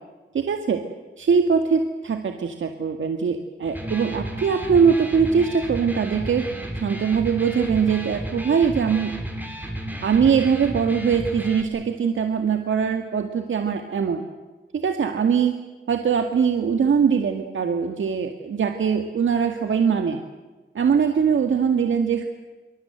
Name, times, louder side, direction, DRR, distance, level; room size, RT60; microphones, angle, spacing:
voice 1, 0.3-0.8 1.2-6.4 6.8-9.1 10.0-14.2 14.7-15.5 15.9-20.2 20.7-22.3, right 6 dB, 70° right, 6 dB, 1.9 m, -22 dB
Electric guitar, 3.6-11.6, equal, 10° right, 4.6 m, -33 dB
26.5 x 25.0 x 7.9 m, 1.3 s
wide cardioid pair, 135°, 20 cm